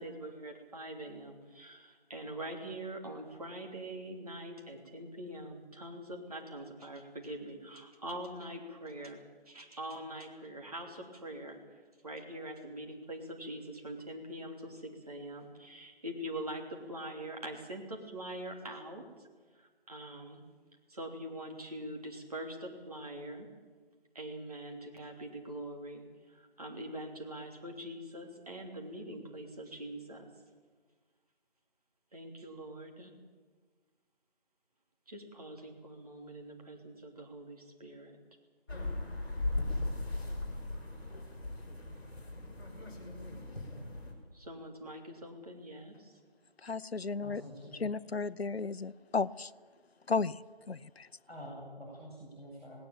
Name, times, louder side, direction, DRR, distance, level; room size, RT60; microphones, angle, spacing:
voice 1, 0.0-11.6 12.0-19.3 19.5-20.4 20.9-23.5 24.1-30.3 32.1-33.1 35.1-38.2 44.3-46.2, right 1 dB, 40° right, 3.1 m, -44 dB
sound 1, 38.7-44.1, left 2 dB, 20° left, 4.3 m, -38 dB
voice 2, 46.6-47.4 47.8-49.5 50.1-50.4 50.7-51.1, left 4 dB, 80° left, 0.8 m, -34 dB
voice 3, 47.2-47.7 48.0-48.1 51.3-52.8, equal, 5° right, 6.0 m, -47 dB
18.0 x 18.0 x 9.0 m
figure-of-eight pair, 170°, 31 cm